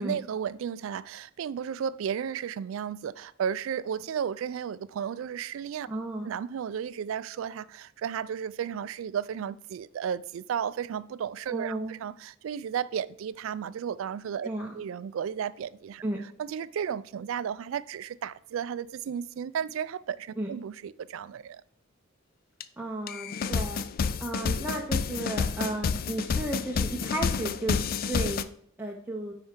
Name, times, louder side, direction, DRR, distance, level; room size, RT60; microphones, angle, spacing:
voice 1, 0.0-5.9 6.2-14.5 14.7-16.0 16.4-21.6, right 8 dB, 75° right, 0.3 m, -33 dB
voice 2, 5.9-6.3 11.5-12.0 14.4-14.8 16.0-16.2 20.4-20.5 22.8-23.8 24.2-27.8 28.1-28.4 28.8-29.3, right 1 dB, 10° right, 0.6 m, -33 dB
sound 1, 22.6-22.7 23.1-28.4, left 5 dB, 45° left, 0.3 m, -29 dB
9.5 x 4.5 x 3.7 m
head